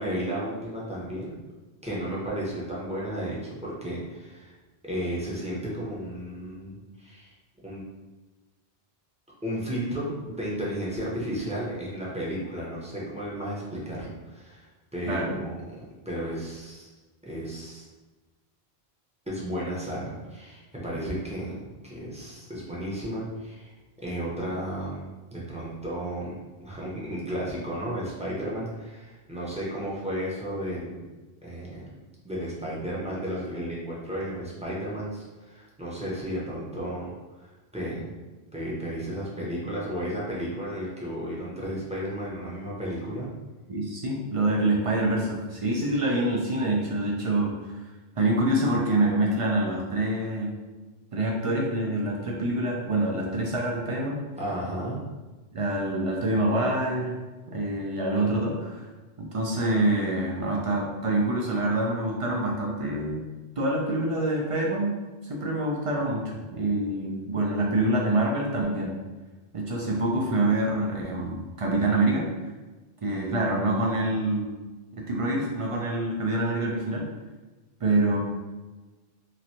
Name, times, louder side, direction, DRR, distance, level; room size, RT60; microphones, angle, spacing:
voice 1, 0.0-1.4 1.8-4.5 4.8-7.3 7.6-7.8 9.4-14.7 14.9-15.6 16.0-16.9 17.2-17.8 19.3-23.7 24.0-31.0 31.4-31.9 32.2-38.1 38.5-43.3 54.4-55.0, equal, 10° right, -7 dB, 0.6 m, -33 dB
voice 2, 43.7-47.5 48.2-50.5 51.1-54.2 55.5-57.2 57.5-58.9 59.2-63.3 63.6-65.0 65.2-66.2 66.5-69.0 69.5-72.3 73.0-74.5 74.9-77.1 77.8-78.2, right 1 dB, 55° right, -1 dB, 0.3 m, -26 dB
3.0 x 2.5 x 2.7 m, 1.2 s
omnidirectional pair, 1.1 m